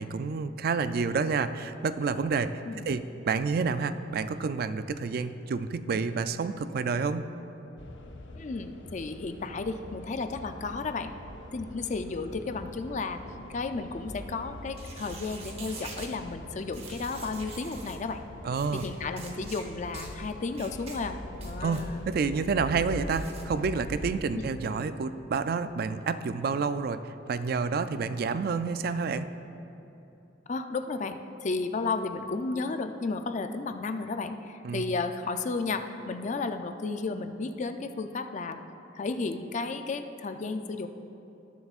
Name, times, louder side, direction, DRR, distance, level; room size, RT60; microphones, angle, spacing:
voice 1, 0.0-7.3 18.4-18.8 21.6-27.0 27.3-29.3 34.6-34.8, right 5 dB, 55° right, 12 dB, 0.3 m, -29 dB
sound 1, 7.8-24.2, left 1 dB, 85° left, 0.8 m, -43 dB
voice 2, 8.3-11.1 11.5-13.2 13.5-18.2 18.7-21.2 21.4-22.1 24.3-24.5 30.5-38.6 39.0-40.9, left 3 dB, 40° left, 8 dB, 0.4 m, -33 dB
sound 2, 14.7-16.1 16.7-18.0 18.5-18.9 19.2-19.6 19.9-20.1 20.5-21.0 21.3-21.9 23.1-23.4, right 4 dB, 35° right, 1.1 m, -45 dB
19.0 x 7.0 x 2.4 m, 2.9 s
head